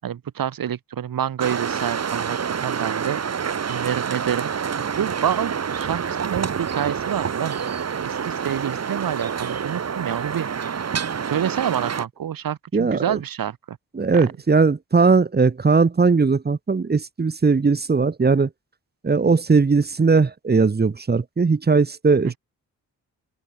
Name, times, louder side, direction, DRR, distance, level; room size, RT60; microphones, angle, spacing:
voice 1, 0.0-2.4 2.6-3.2 3.7-4.5 5.0-7.6 8.0-10.7 11.3-13.8, right 9 dB, 75° right, 7.4 m, -27 dB
sound 1, 1.4-12.0, right 7 dB, 45° right, 1.6 m, -27 dB
voice 2, 12.7-13.2 13.9-18.5 19.0-22.3, right 4 dB, 30° right, 1.2 m, -19 dB
open air
cardioid pair, 65°, 34 cm